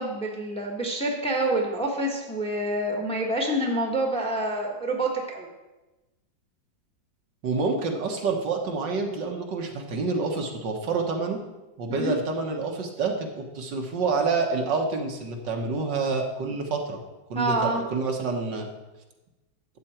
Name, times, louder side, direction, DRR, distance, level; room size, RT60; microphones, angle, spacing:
voice 1, 0.0-5.5 11.9-12.1 17.3-17.8, right 1 dB, 5° left, 1 dB, 1.3 m, -27 dB
voice 2, 7.4-11.4 11.8-17.0 17.3-18.7, right 4 dB, 65° right, 2 dB, 1.8 m, -28 dB
12.5 x 8.3 x 4.4 m, 1.1 s
omnidirectional pair, 2.1 m